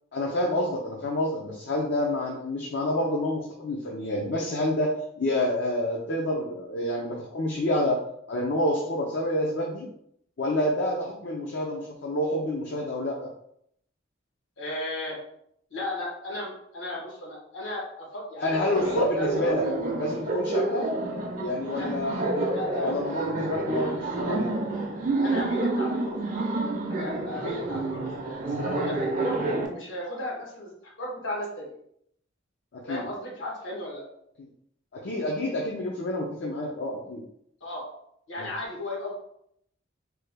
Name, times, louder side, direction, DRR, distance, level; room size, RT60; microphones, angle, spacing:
voice 1, 0.1-8.0 8.3-9.9 10.4-13.3 18.4-19.6 20.0-20.9 21.4-22.5 22.8-24.5 32.7-33.0 34.9-37.2 38.4-38.5, left 1 dB, 60° left, -2 dB, 0.5 m, -28 dB
voice 2, 14.6-15.2 15.7-19.6 21.7-21.9 22.5-23.0 23.4-23.5 25.2-26.5 26.8-29.4 29.7-31.7 32.9-34.0 37.6-37.8 38.3-39.1, left 1 dB, 80° left, -2 dB, 1.2 m, -35 dB
Laughter, 18.8-29.7, right 2 dB, 45° right, 0.5 m, -28 dB
3.3 x 2.2 x 3.3 m, 0.71 s
head